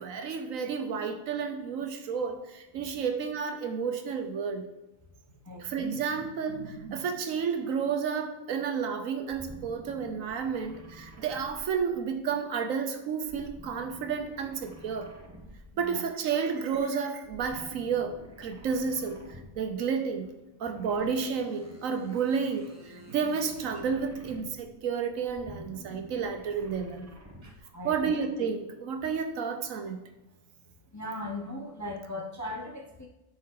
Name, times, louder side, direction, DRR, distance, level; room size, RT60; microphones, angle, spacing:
voice 1, 0.0-4.6 5.6-15.1 15.8-19.2 19.6-20.2 20.6-27.1 27.8-30.0, right 6 dB, 80° right, 6 dB, 1.2 m, -31 dB
voice 2, 5.5-5.8 15.7-16.1 27.4-28.2 30.9-33.1, left 1 dB, 20° left, 1 dB, 0.5 m, -39 dB
sound 1, 9.3-12.3 13.2-15.9 17.2-19.8 20.7-24.7 25.2-27.7, equal, 15° right, 0.8 m, -50 dB
9.9 x 4.7 x 3.8 m, 0.99 s
omnidirectional pair, 1.4 m